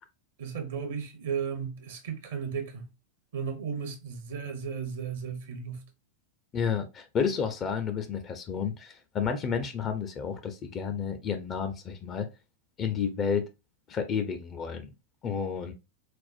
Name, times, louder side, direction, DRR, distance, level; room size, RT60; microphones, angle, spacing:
voice 1, 0.4-2.9 3.3-5.9, right 6 dB, 60° right, 0.7 m, -35 dB
voice 2, 6.5-12.3 12.8-13.5 13.9-14.9 15.2-15.7, left 6 dB, 30° left, 0.5 m, -31 dB
4.2 x 2.0 x 2.3 m
figure-of-eight pair, 90°, 0 cm